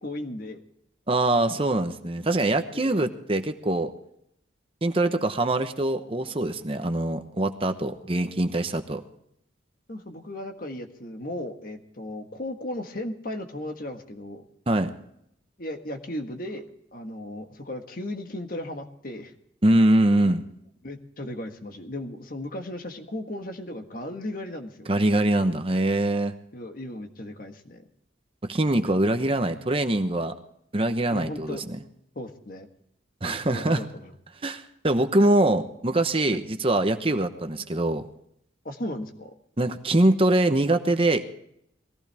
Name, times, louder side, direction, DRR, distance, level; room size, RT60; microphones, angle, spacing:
voice 1, 0.0-0.6 9.9-14.4 15.6-19.3 20.2-20.3 20.8-24.9 26.5-27.8 31.1-31.6 32.1-32.7 33.2-34.1 36.3-36.4 38.6-39.3, left 1 dB, 50° left, 5 dB, 1.6 m, -36 dB
voice 2, 1.1-3.9 4.8-9.0 14.7-14.9 19.6-20.4 24.9-26.3 28.4-30.3 30.7-31.8 33.2-33.8 34.4-38.1 39.6-41.2, right 1 dB, 30° right, 7 dB, 0.9 m, -23 dB
20.5 x 15.0 x 3.4 m, 0.74 s
head